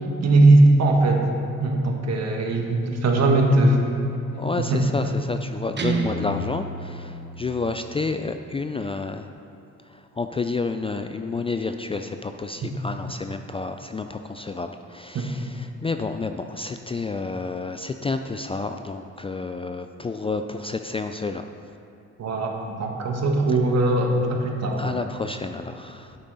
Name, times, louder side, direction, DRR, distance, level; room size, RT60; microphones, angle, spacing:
voice 1, 0.2-1.3 1.6-3.9 4.7-4.8 15.1-15.3 22.2-24.9, right 2 dB, 60° right, 2 dB, 1.4 m, -19 dB
voice 2, 4.4-9.3 9.8-21.5 23.5-23.6 24.8-26.2, left 3 dB, 20° left, 7 dB, 0.3 m, -30 dB
Guitar, 5.8-7.8, right 3 dB, 35° right, 1.1 m, -30 dB
9.6 x 8.2 x 4.0 m, 2.8 s
cardioid pair, 90°, 30 cm